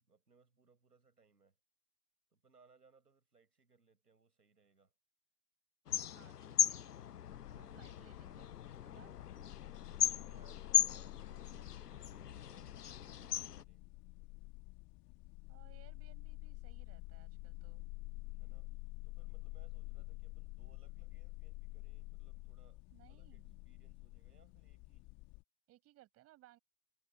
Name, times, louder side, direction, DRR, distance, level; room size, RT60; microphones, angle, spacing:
voice 1, 0.0-1.6 2.3-4.9 7.6-8.0 9.7-13.8 18.3-18.7 19.0-25.1, right 4 dB, 90° right, 6.2 m, -70 dB
sound 1, 5.9-13.6, left 10 dB, 85° left, 0.7 m, -37 dB
voice 2, 6.1-6.8 7.5-9.1 15.5-17.9 22.9-23.6 25.7-26.6, right 16 dB, 30° right, 6.7 m, -64 dB
sound 2, 7.3-25.4, left 25 dB, 35° left, 2.8 m, -50 dB
figure-of-eight pair, 105°, 46 cm